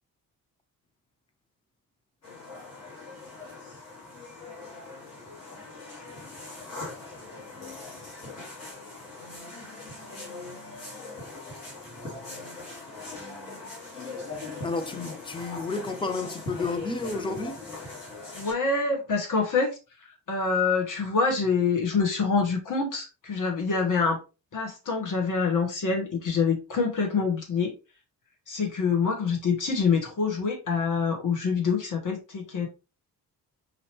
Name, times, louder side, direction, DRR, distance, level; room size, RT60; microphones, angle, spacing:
sound 1, 2.2-18.5, left 3 dB, 80° left, 2.1 m, -41 dB
voice 1, 14.6-17.6, left 3 dB, 10° left, 0.5 m, -31 dB
voice 2, 18.3-19.7 20.3-24.2 24.5-27.7 28.5-32.7, left 5 dB, 40° left, 1.6 m, -26 dB
4.9 x 2.9 x 3.0 m
figure-of-eight pair, 40°, 46 cm